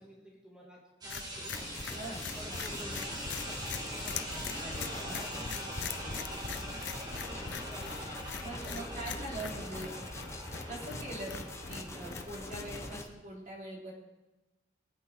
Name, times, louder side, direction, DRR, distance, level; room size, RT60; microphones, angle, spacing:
voice 1, 0.0-5.7 6.2-8.1 8.6-9.6 11.8-12.2, equal, 5° right, -4 dB, 2.0 m, -53 dB
sound 1, 1.0-13.0, equal, 20° right, 1.9 m, -43 dB
sound 2, 1.1-13.1, left 7 dB, 75° left, 0.7 m, -43 dB
sound 3, 1.5-13.1, left 2 dB, 15° left, 1.1 m, -44 dB
voice 2, 4.6-5.3 6.0-6.2 8.4-9.9 10.7-11.3 11.7-13.9, right 1 dB, 45° right, -2 dB, 3.7 m, -42 dB
23.5 x 8.5 x 4.6 m, 1.1 s
head